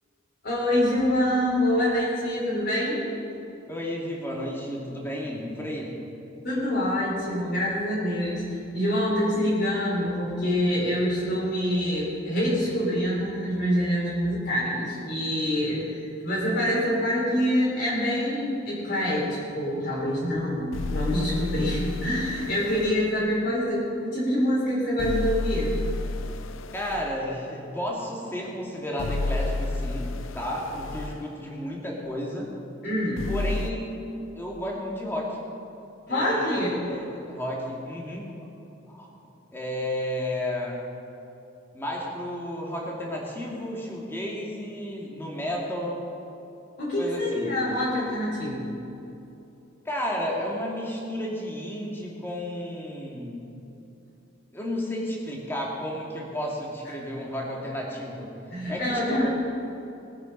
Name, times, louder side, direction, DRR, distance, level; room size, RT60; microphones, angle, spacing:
voice 1, 0.4-3.0 6.4-25.8 32.8-33.3 36.1-36.7 46.8-48.8 56.9-57.0 58.5-59.3, equal, 55° left, -8 dB, 3.7 m, -26 dB
voice 2, 3.7-6.0 26.7-32.5 33.3-33.9 34.4-35.4 36.1-38.3 38.9-39.1 39.5-40.8 41.7-46.0 47.0-47.6 49.8-53.5 54.5-58.3 58.7-59.3, equal, 10° left, -3 dB, 2.4 m, -32 dB
sound 1, 20.7-23.0 25.0-27.1 29.0-31.2 33.2-33.7, left 2 dB, 80° left, 0.6 m, -31 dB
20.5 x 9.0 x 5.3 m, 2.9 s
head